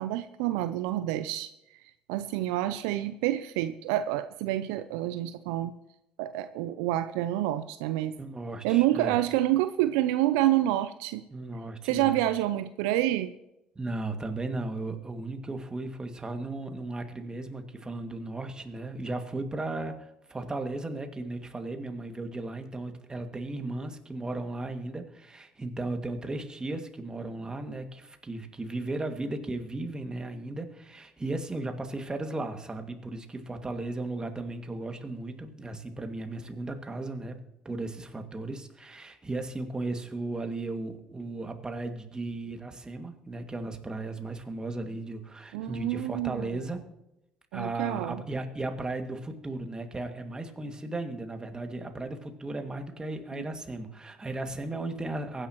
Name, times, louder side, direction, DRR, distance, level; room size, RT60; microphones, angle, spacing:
voice 1, 0.0-1.5 2.1-5.7 6.2-8.1 8.6-11.2 11.8-13.3 45.5-46.6 47.5-48.2 53.3-53.4, right 14 dB, 80° right, 12 dB, 0.5 m, -28 dB
voice 2, 8.2-9.2 11.3-12.2 13.8-46.8 47.5-55.5, right 2 dB, 20° right, 5 dB, 2.2 m, -36 dB
23.5 x 10.0 x 3.0 m, 0.90 s
hypercardioid pair, 55°, 3 cm